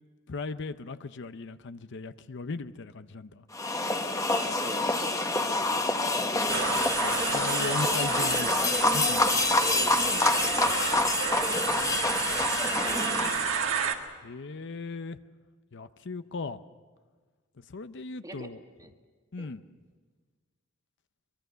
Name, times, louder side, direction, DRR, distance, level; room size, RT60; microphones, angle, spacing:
voice 1, 0.3-3.4 7.0-8.5 8.9-9.2 14.2-15.2 15.7-16.6 17.6-18.6 19.3-19.6, left 4 dB, 60° left, 12 dB, 0.7 m, -37 dB
sound 1, 3.5-13.6, left 2 dB, 15° left, 1.1 m, -27 dB
voice 2, 4.3-5.1 7.0-8.7 9.4-10.9 11.4-11.8 12.8-13.5 18.2-18.5 18.8-18.9 19.4-19.5, right 1 dB, 20° right, 4 dB, 1.8 m, -42 dB
sound 2, 6.5-13.9, right 7 dB, 70° right, 1.8 m, -31 dB
23.5 x 22.5 x 6.8 m, 1.4 s
head